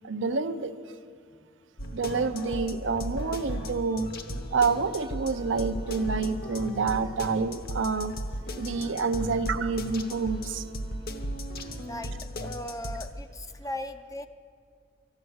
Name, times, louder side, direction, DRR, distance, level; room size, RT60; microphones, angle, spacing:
voice 1, 0.1-0.7 1.9-4.1 4.5-8.1 8.6-10.6, right 4 dB, 65° right, 10 dB, 0.6 m, -28 dB
sound 1, 1.8-13.1, equal, 50° left, 1.0 m, -36 dB
voice 2, 11.9-14.3, left 1 dB, 15° left, 9 dB, 0.5 m, -38 dB
12.0 x 12.0 x 7.8 m, 2.1 s
head